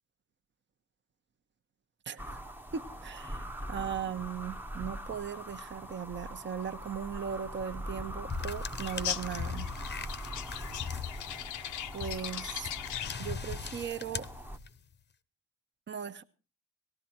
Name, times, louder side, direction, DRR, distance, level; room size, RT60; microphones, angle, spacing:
voice 1, 2.1-2.4 2.7-9.7 11.9-12.7 13.2-14.3 15.9-16.2, right 8 dB, 35° right, 1.0 m, -38 dB
sound 1, 2.2-14.6, equal, 5° right, 0.9 m, -42 dB
sound 2, 8.3-14.9, left 7 dB, 35° left, 0.8 m, -41 dB
sound 3, 8.8-13.3, left 12 dB, 80° left, 0.8 m, -40 dB
18.5 x 13.0 x 4.4 m
cardioid pair, 90°, 30 cm